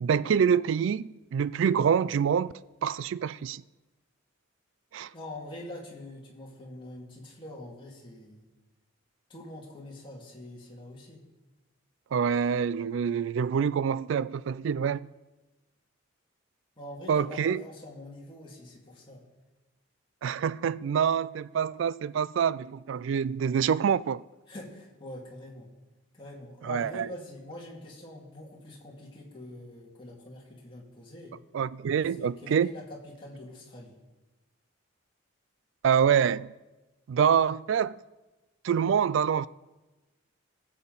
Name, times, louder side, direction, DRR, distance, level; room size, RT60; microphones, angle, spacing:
voice 1, 0.0-2.5 2.8-3.6 4.9-5.1 12.1-15.0 17.1-17.6 20.2-24.2 26.6-27.1 31.5-32.7 35.8-36.5 37.1-38.0 38.6-39.5, right 7 dB, 65° right, 0.3 m, -26 dB
voice 2, 5.1-8.5 9.3-11.2 16.8-19.2 24.5-25.7 26.1-31.4 32.2-34.0, left 1 dB, 25° left, 2.3 m, -44 dB
18.5 x 7.6 x 4.0 m
head